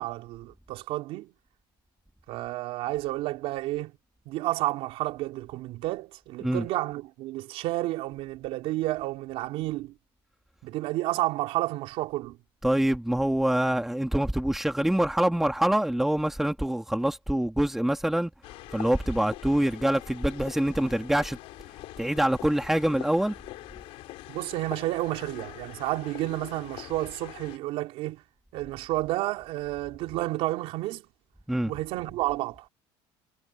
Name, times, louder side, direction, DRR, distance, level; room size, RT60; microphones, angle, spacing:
voice 1, 0.0-1.3 2.3-3.9 4.3-9.9 10.6-12.4 24.3-28.2 28.5-31.0 31.6-32.7, right 17 dB, 65° right, 4.1 m, -31 dB
voice 2, 12.6-18.3 18.7-21.4 22.0-23.4 31.5-31.7, right 1 dB, 5° right, 2.0 m, -25 dB
sound 1, 18.4-27.6, left 18 dB, 65° left, 4.1 m, -44 dB
cardioid pair, 130°, 11 cm